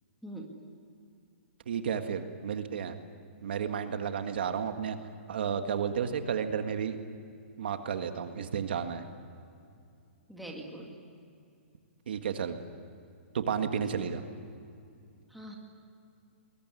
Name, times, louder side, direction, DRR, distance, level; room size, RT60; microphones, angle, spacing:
voice 1, 0.2-0.6 10.3-10.9 15.3-15.5, right 1 dB, ahead, -2 dB, 2.0 m, -43 dB
voice 2, 1.7-3.0 3.4-5.0 5.3-7.0 7.6-9.1 12.1-12.6 13.3-14.2, right 7 dB, 50° right, 7 dB, 1.8 m, -32 dB
27.5 x 21.5 x 9.8 m, 2.4 s
hypercardioid pair, 180°, 7 cm